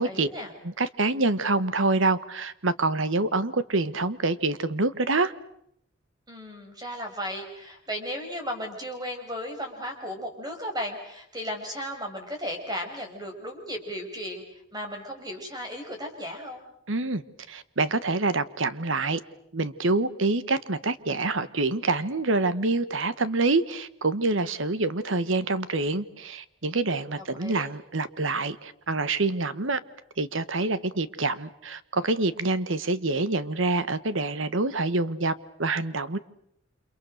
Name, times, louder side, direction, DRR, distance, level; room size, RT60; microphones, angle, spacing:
voice 1, 0.0-0.5 6.3-14.4 14.7-16.6 27.2-27.7, equal, 20° right, 4 dB, 5.6 m, -35 dB
voice 2, 0.6-5.3 16.9-17.2 17.5-19.2 19.5-29.8 30.2-35.3 35.6-36.2, right 3 dB, 75° right, 14 dB, 1.3 m, -26 dB
29.5 x 27.5 x 6.5 m, 0.73 s
head